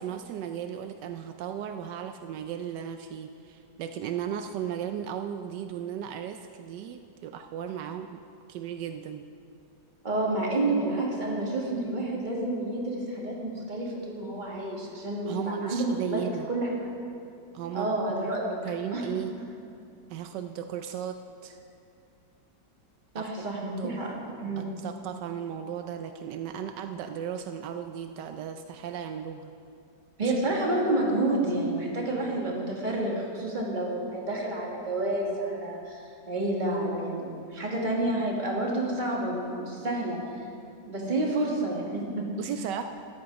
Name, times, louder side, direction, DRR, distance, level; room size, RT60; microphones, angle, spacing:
voice 1, 0.0-8.2 8.5-9.2 15.3-16.5 17.5-17.9 18.6-19.4 20.1-21.6 23.1-23.5 23.8-24.0 24.6-29.5 30.2-30.3 42.4-42.8, right 9 dB, 80° right, 7 dB, 1.2 m, -36 dB
voice 2, 10.0-16.7 17.7-18.6 18.9-19.0 23.1-24.7 30.2-40.2 40.9-42.3, right 2 dB, 25° right, -2 dB, 2.0 m, -29 dB
13.5 x 10.0 x 5.2 m, 2.6 s
omnidirectional pair, 1.9 m